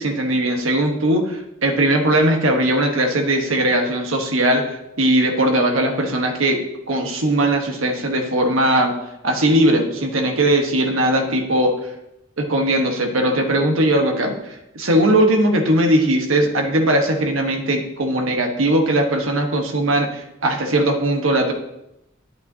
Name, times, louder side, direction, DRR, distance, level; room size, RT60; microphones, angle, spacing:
voice 1, 0.0-6.6 6.9-8.9 9.2-11.7 12.4-21.5, right 1 dB, 90° right, 4 dB, 1.2 m, -19 dB
11.0 x 8.9 x 2.8 m, 0.88 s
head